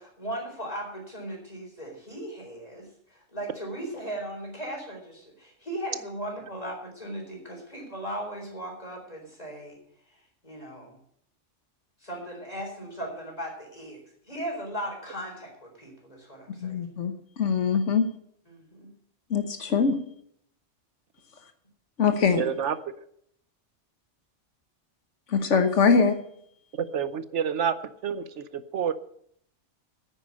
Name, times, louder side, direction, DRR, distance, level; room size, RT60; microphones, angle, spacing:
voice 1, 0.0-9.8 10.4-11.0 12.0-16.8 18.5-18.9, right 1 dB, 30° left, 1 dB, 4.2 m, -37 dB
voice 2, 16.6-17.1 17.4-18.0 19.3-20.0 22.0-22.4 25.3-26.1, left 5 dB, 75° left, 7 dB, 1.5 m, -22 dB
voice 3, 22.4-22.8 26.8-27.8 28.0-28.9, right 7 dB, 75° right, 13 dB, 1.1 m, -28 dB
9.9 x 9.1 x 8.5 m, 0.69 s
omnidirectional pair, 1.2 m